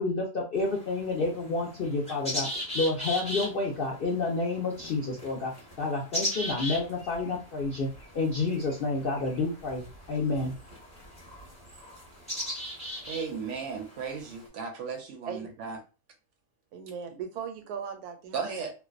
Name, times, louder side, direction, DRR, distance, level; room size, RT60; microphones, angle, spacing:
voice 1, 0.0-5.5 5.8-7.9 8.1-10.5, left 3 dB, 65° left, 0.5 m, -29 dB
sound 1, 0.5-14.5, left 1 dB, 5° left, 0.8 m, -39 dB
voice 2, 13.1-15.8 18.3-18.7, right 5 dB, 65° right, 0.8 m, -35 dB
voice 3, 16.7-18.5, right 7 dB, 85° right, 1.1 m, -38 dB
2.5 x 2.1 x 2.3 m
omnidirectional pair, 1.6 m